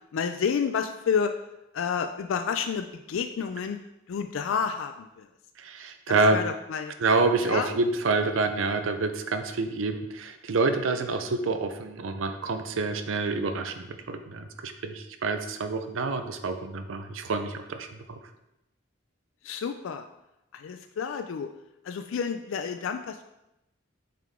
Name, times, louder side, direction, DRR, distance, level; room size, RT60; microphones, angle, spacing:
voice 1, 0.1-1.3 1.7-3.8 4.1-5.3 6.1-6.9 7.4-7.8 19.4-20.1 20.5-21.5 21.8-23.2, left 6 dB, 80° left, 7 dB, 0.4 m, -30 dB
voice 2, 5.6-6.4 7.0-18.2, right 3 dB, 80° right, 8 dB, 0.6 m, -27 dB
7.4 x 4.0 x 3.5 m, 0.89 s
head